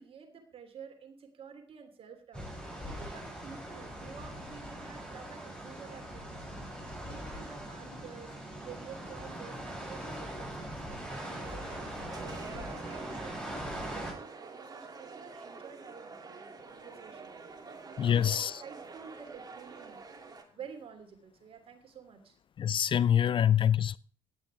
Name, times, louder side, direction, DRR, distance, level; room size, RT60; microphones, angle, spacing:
voice 1, 0.0-6.7 7.0-8.3 8.6-11.0 11.5-20.0 20.5-22.4, right 7 dB, 45° right, 2.8 m, -50 dB
sound 1, 2.3-14.1, right 1 dB, 5° left, 7.2 m, -41 dB
sound 2, 11.1-20.4, right 4 dB, 30° right, 2.7 m, -47 dB
voice 2, 18.0-18.6 22.6-24.0, left 9 dB, 40° left, 0.5 m, -25 dB
17.5 x 12.0 x 3.4 m
figure-of-eight pair, 50°, 13 cm